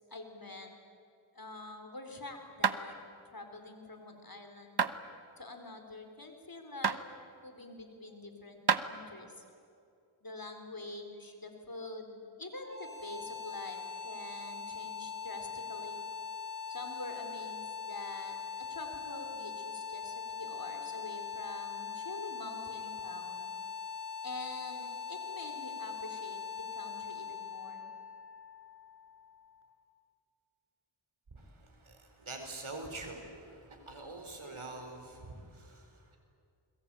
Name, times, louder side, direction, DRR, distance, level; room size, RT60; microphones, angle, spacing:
voice 1, 0.1-0.7 1.3-3.0 3.3-4.8 5.4-7.0 7.3-9.4 10.2-16.0 16.7-23.4 24.2-27.8, left 2 dB, 45° left, 5 dB, 4.2 m, -46 dB
sound 1, 2.6-2.8 4.8-5.0 6.8-7.0 8.7-8.9, right 5 dB, 55° right, 1.1 m, -27 dB
sound 2, 12.6-29.5, left 6 dB, 25° right, 7.6 m, -42 dB
voice 2, 31.3-36.2, right 2 dB, 85° right, 4 dB, 4.7 m, -45 dB
29.5 x 22.0 x 9.2 m, 2.5 s
wide cardioid pair, 55°, 47 cm